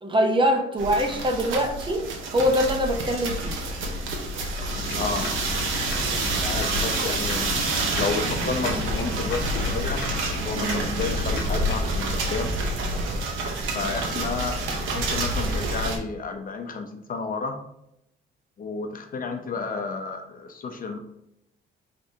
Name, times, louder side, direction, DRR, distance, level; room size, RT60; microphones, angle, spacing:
voice 1, 0.0-3.6 10.6-10.9, equal, 25° right, 3 dB, 0.8 m, -24 dB
sound 1, 0.8-16.0, right 2 dB, 85° right, 0.9 m, -28 dB
sound 2, 4.7-12.0, left 4 dB, 75° left, 0.9 m, -33 dB
voice 2, 5.0-5.3 6.4-7.5 7.9-10.0 10.4-12.5 13.7-14.6 14.9-17.5 18.6-21.0, left 4 dB, 45° left, 5 dB, 0.7 m, -31 dB
5.0 x 3.3 x 2.8 m, 0.78 s
cardioid pair, 90°, 20 cm